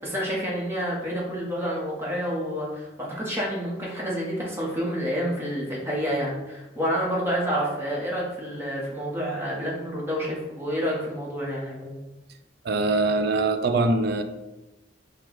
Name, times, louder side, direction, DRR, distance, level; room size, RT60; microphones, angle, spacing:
voice 1, 0.0-12.0, equal, 10° right, 1.1 m, -29 dB
voice 2, 12.6-14.2, right 3 dB, 55° right, 0.4 m, -23 dB
4.4 x 2.3 x 4.7 m
head